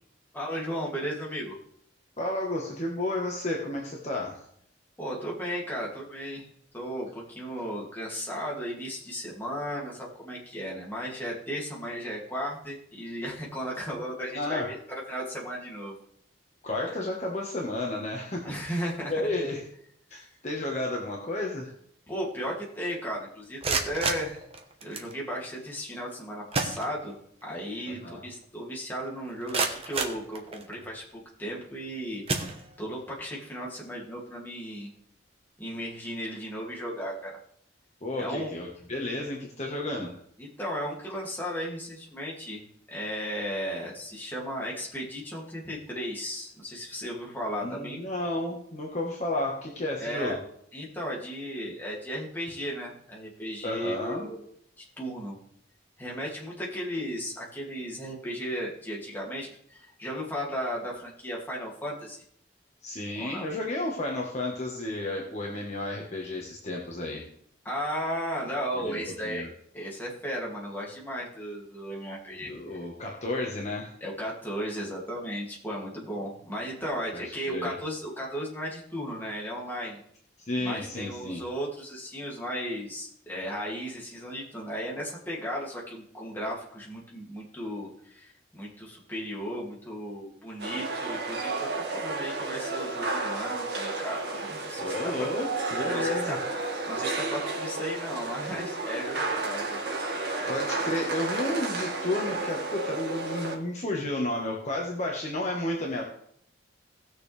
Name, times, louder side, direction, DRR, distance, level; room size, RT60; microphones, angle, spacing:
voice 1, 0.3-1.6 5.0-6.5 6.7-15.9 16.9-17.0 18.4-19.1 20.2-20.3 22.1-24.4 24.8-27.2 27.4-32.2 32.8-34.9 35.6-37.4 38.2-38.5 40.4-42.6 42.9-48.0 50.0-50.4 50.7-54.4 54.8-55.4 56.0-62.2 63.2-63.5 67.6-69.5 69.7-72.5 74.0-80.0 80.6-95.3 95.9-96.4 96.9-99.8 100.4-100.6, equal, 10° left, -4 dB, 2.6 m, -35 dB
voice 2, 2.2-4.4 14.3-14.7 16.6-18.8 19.1-19.6 20.1-21.7 27.9-28.2 38.0-40.2 47.6-50.4 53.6-54.3 62.8-67.2 68.7-69.5 72.4-73.9 77.1-77.2 77.5-77.8 80.5-81.4 94.8-96.4 100.4-106.0, left 1 dB, 35° left, -1 dB, 1.5 m, -32 dB
sound 1, 23.4-25.1 26.1-26.2 26.5-27.4 27.8-27.9 28.4-28.5 29.1-30.9 31.6-31.8 32.2-33.1, right 3 dB, 30° right, 1.1 m, -32 dB
sound 2, 90.6-103.6, right 3 dB, 55° right, 2.1 m, -32 dB
18.0 x 6.7 x 3.4 m, 0.68 s
head